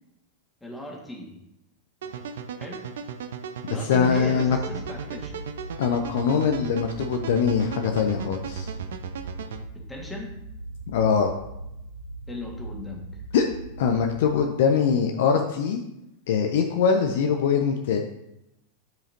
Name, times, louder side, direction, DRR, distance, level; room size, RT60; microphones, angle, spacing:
voice 1, 0.6-1.4 2.6-2.8 3.7-5.4 9.7-10.3 12.3-13.2, left 1 dB, 10° left, -1 dB, 1.8 m, -37 dB
sound 1, 2.0-9.6, right 7 dB, 60° right, 0.5 m, -36 dB
voice 2, 3.8-4.6 5.8-8.7 10.9-11.3 13.3-13.4 13.8-15.8 16.3-18.0, left 6 dB, 55° left, 4 dB, 0.6 m, -22 dB
sound 2, 4.0-14.3, right 2 dB, 85° right, 1.0 m, -40 dB
10.5 x 4.9 x 2.8 m, 0.86 s
figure-of-eight pair, 90°, 0 cm